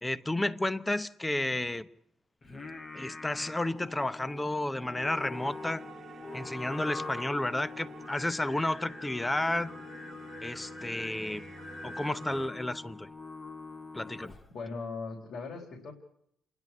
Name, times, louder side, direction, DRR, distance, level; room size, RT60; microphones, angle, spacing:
voice 1, 0.0-1.9 2.9-5.8 6.3-9.7 10.4-11.5 11.8-13.1 13.9-14.4, left 1 dB, 15° left, 0.9 m, -32 dB
Singing, 2.4-14.6, left 3 dB, 40° left, 1.8 m, -44 dB
sound 1, 5.3-12.5, right 6 dB, 55° right, 1.3 m, -50 dB
voice 2, 14.5-15.9, left 4 dB, 65° left, 3.8 m, -39 dB
27.5 x 11.0 x 9.7 m
cardioid pair, 90°, 0 cm